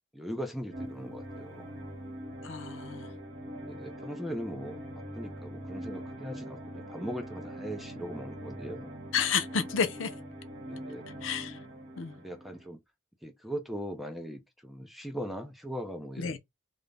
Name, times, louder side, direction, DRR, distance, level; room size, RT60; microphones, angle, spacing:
voice 1, 0.1-1.8 3.6-4.8 5.1-8.9 10.6-11.0 12.2-12.8 13.2-16.4, equal, ahead, 0.4 m, -39 dB
sound 1, 0.7-12.7, equal, 35° right, 0.8 m, -42 dB
voice 2, 2.4-3.1 9.1-10.1 11.2-11.6 12.0-12.2 16.2-16.4, left 6 dB, 75° left, 0.5 m, -30 dB
2.4 x 2.1 x 3.2 m
head